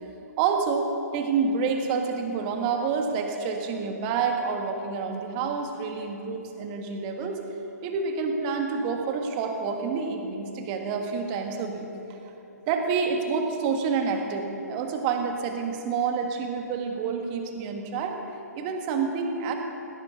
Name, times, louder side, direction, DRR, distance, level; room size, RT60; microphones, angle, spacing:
voice 1, 0.4-7.4 7.8-12.2 12.7-18.2 18.5-19.5, right 5 dB, 30° right, 4 dB, 1.7 m, -28 dB
17.5 x 17.5 x 3.9 m, 2.9 s
figure-of-eight pair, 130°, 9 cm